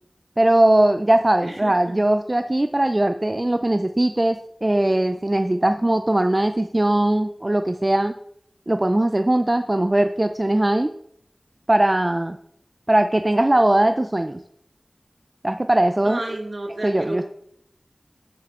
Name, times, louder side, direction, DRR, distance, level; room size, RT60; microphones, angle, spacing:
voice 1, 0.4-8.1 8.7-10.9 11.7-12.4 12.9-14.4 15.4-16.2 16.8-17.2, right 1 dB, 30° right, 8 dB, 0.4 m, -20 dB
voice 2, 1.4-2.0 16.0-17.2, right 1 dB, 55° right, 2 dB, 1.8 m, -32 dB
13.0 x 5.7 x 3.6 m, 0.72 s
wide cardioid pair, 65°, 0 cm